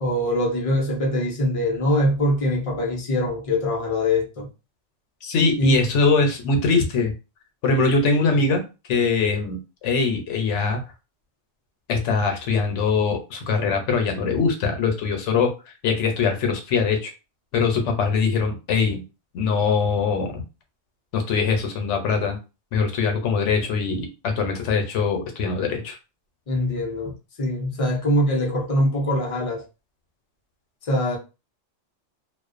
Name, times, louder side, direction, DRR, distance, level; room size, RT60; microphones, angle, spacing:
voice 1, 0.0-4.5 5.6-5.8 26.5-29.7 30.9-31.2, left 1 dB, 50° left, 0.4 m, -23 dB
voice 2, 5.2-7.1 7.6-8.6 8.9-9.6 9.8-10.8 11.9-15.5 15.8-17.1 17.5-19.0 19.3-20.4 21.1-22.4 22.7-26.0, left 4 dB, 70° left, 0.9 m, -22 dB
2.4 x 2.1 x 2.4 m
omnidirectional pair, 1.3 m